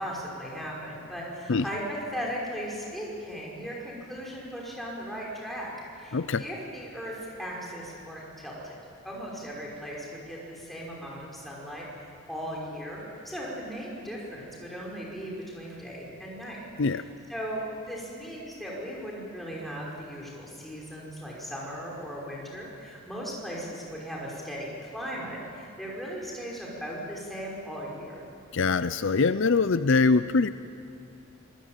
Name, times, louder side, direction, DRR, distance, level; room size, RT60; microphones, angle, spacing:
voice 1, 0.0-8.8 9.0-11.9 12.3-16.6 16.9-17.0 17.3-28.2, equal, ahead, -4 dB, 5.5 m, -37 dB
voice 2, 6.1-6.4 16.8-17.0 28.5-30.5, left 4 dB, 55° left, 13 dB, 0.5 m, -23 dB
25.0 x 21.5 x 9.0 m, 2.6 s
head